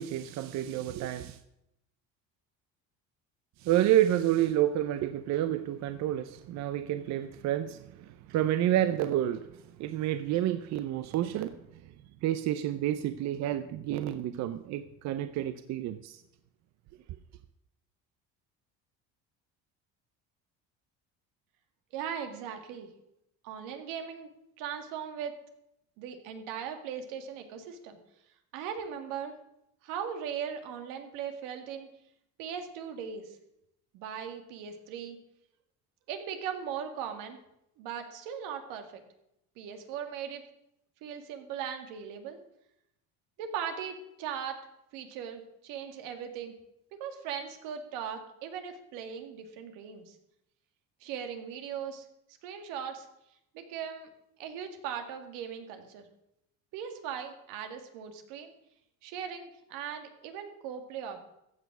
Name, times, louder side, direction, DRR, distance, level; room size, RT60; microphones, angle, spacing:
voice 1, 0.0-1.4 3.6-9.5 9.8-11.6 12.2-16.2, right 12 dB, 60° right, 0.7 m, -29 dB
voice 2, 21.9-22.9 23.4-24.3 24.6-25.4 26.0-28.0 28.5-29.3 29.8-31.9 32.4-33.4 33.9-35.2 36.1-37.4 37.8-39.0 39.6-40.4 41.0-42.4 43.4-44.6 44.9-46.5 47.0-50.1 51.0-52.0 52.4-53.1 53.5-54.1 54.4-56.1 56.7-58.5 59.0-61.2, right 8 dB, 90° right, 2.0 m, -39 dB
14.5 x 7.2 x 6.1 m
cardioid pair, 130°, 31 cm